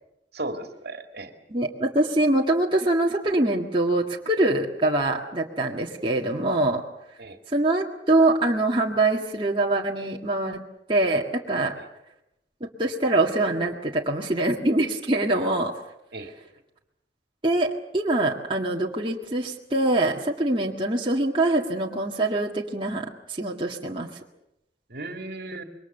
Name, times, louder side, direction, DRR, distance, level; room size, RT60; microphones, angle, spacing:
voice 1, 0.3-1.3 7.2-7.4 11.8-11.9 16.1-16.3 24.9-25.6, right 2 dB, 60° right, 6 dB, 2.3 m, -35 dB
voice 2, 1.5-6.8 7.5-10.6 10.9-11.8 12.6-15.7 17.4-24.1, right 2 dB, 30° right, -2 dB, 1.9 m, -24 dB
27.0 x 22.5 x 6.7 m, 0.86 s
head